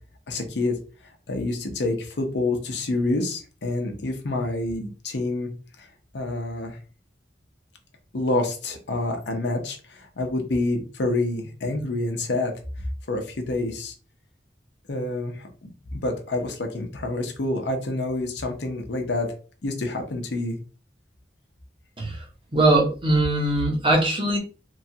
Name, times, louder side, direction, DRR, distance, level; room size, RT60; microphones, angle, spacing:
voice 1, 0.3-0.8 1.3-5.5 6.1-6.8 8.1-12.5 13.1-13.9 14.9-19.3 19.6-20.6, left 2 dB, 80° left, 4 dB, 0.7 m, -27 dB
voice 2, 22.5-24.4, right 2 dB, 30° right, -2 dB, 0.8 m, -21 dB
3.0 x 2.3 x 2.7 m, 0.36 s
head